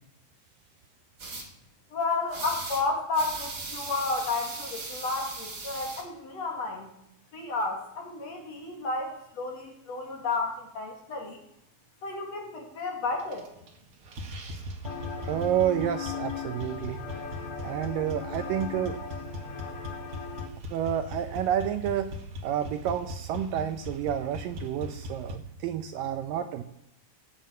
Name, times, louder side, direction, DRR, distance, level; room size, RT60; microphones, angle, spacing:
sound 1, 1.2-1.4 2.3-2.8 3.1-6.0, right 3 dB, 30° right, 2.8 m, -38 dB
voice 1, 1.9-6.9 7.3-11.4 12.0-13.5, left 3 dB, 50° left, 1 dB, 2.9 m, -32 dB
sound 2, 13.2-13.8 14.1-25.4, left 1 dB, 45° right, 2.1 m, -39 dB
sound 3, 14.8-20.5, left 8 dB, 65° left, 1.4 m, -38 dB
voice 2, 15.2-17.0 17.6-19.0 20.7-22.1 22.4-26.6, right 10 dB, 75° right, 8 dB, 2.1 m, -29 dB
17.5 x 7.7 x 8.7 m, 0.79 s
omnidirectional pair, 4.5 m